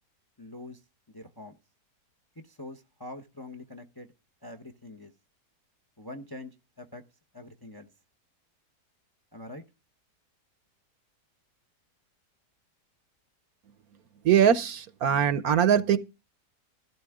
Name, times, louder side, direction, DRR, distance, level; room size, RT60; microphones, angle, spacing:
voice 1, 0.4-0.8 1.1-1.6 2.4-4.1 4.4-5.1 6.0-7.0 7.3-7.9 9.3-9.6, left 2 dB, 15° left, 0.8 m, -44 dB
voice 2, 14.2-16.0, right 9 dB, 65° right, 1.2 m, -22 dB
14.5 x 12.5 x 3.6 m
omnidirectional pair, 1.8 m